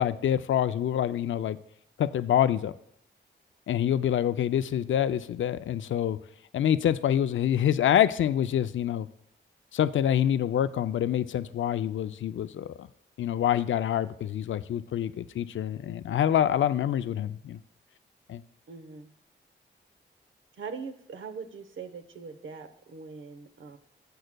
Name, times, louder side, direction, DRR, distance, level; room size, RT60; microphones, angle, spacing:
voice 1, 0.0-1.6 2.0-2.7 3.7-6.2 6.5-9.1 9.7-12.9 13.2-17.6 18.3-18.4, left 10 dB, 75° left, 13 dB, 0.4 m, -26 dB
voice 2, 18.7-19.1 20.5-23.8, right 5 dB, 80° right, 8 dB, 0.9 m, -41 dB
14.5 x 7.5 x 2.2 m, 0.72 s
cardioid pair, 75°, 20 cm